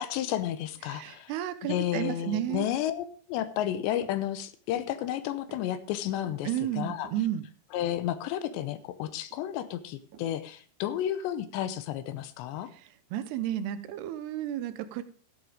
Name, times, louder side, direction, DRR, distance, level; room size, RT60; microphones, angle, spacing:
voice 1, 0.0-1.3 1.7-6.5 6.8-7.1 7.7-12.7, left 11 dB, 85° left, 12 dB, 3.1 m, -32 dB
voice 2, 0.9-2.7 6.4-7.4 13.1-15.0, right 11 dB, 80° right, 12 dB, 2.7 m, -32 dB
sound 1, 4.0-4.3 4.6-5.0 5.5-5.7 6.2-6.5 6.9-8.0 8.5-8.8 9.1-9.6 10.1-10.3 10.9-11.2, right 5 dB, 55° right, 2.6 m, -52 dB
13.5 x 8.0 x 5.0 m, 0.43 s
omnidirectional pair, 5.0 m